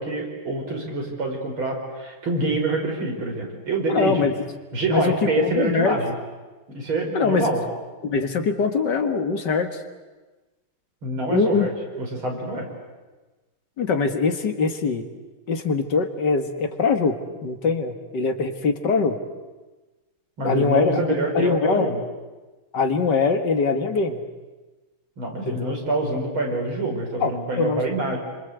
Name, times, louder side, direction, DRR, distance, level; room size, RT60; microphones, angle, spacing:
voice 1, 0.0-4.2 4.7-6.1 6.7-7.6 11.0-11.7 12.0-12.7 20.4-22.0 25.2-28.2, right 2 dB, 75° right, 1 dB, 5.8 m, -26 dB
voice 2, 3.9-4.3 4.9-6.0 7.1-7.5 8.0-9.7 11.3-11.7 13.8-15.1 15.5-17.2 17.4-19.2 20.4-21.0 21.4-21.9 22.7-24.2 25.5-25.8 27.2-27.8, left 4 dB, 60° left, 7 dB, 2.2 m, -22 dB
27.5 x 26.0 x 8.1 m, 1.2 s
omnidirectional pair, 2.3 m